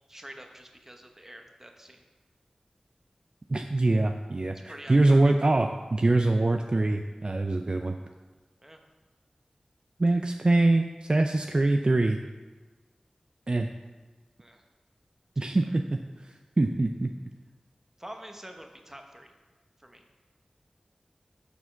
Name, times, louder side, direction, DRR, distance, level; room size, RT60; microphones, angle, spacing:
voice 1, 0.1-2.0 4.6-5.3 8.6-8.8 14.4-14.6 15.3-15.7 18.0-19.3 19.8-20.0, right 1 dB, 15° right, 4 dB, 1.0 m, -46 dB
voice 2, 3.5-8.0 10.0-12.2 13.5-13.7 15.4-17.1, right 2 dB, 45° right, 5 dB, 0.4 m, -24 dB
6.8 x 4.4 x 5.8 m, 1.3 s
cardioid pair, 40°, 2 cm